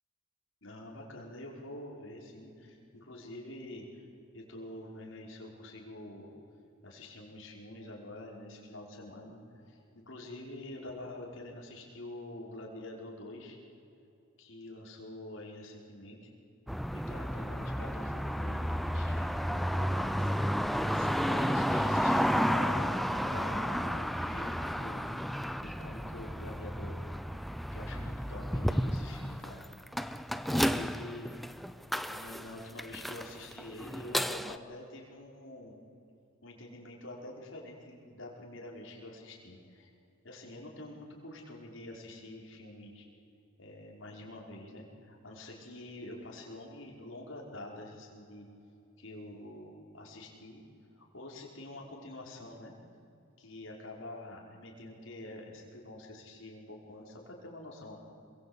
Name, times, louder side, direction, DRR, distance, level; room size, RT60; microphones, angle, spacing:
voice 1, 0.6-4.0 4.3-6.3 6.8-13.6 14.4-16.3 16.9-20.3 20.9-27.0 27.7-29.7 30.4-31.3 32.1-35.7 36.4-39.9 40.2-43.1 43.6-48.5 49.0-50.6 51.0-52.7 53.4-58.0, left 1 dB, 65° left, -1 dB, 5.4 m, -46 dB
sound 1, 16.7-34.6, equal, ahead, 0.6 m, -32 dB
27.5 x 22.5 x 8.3 m, 2.7 s
head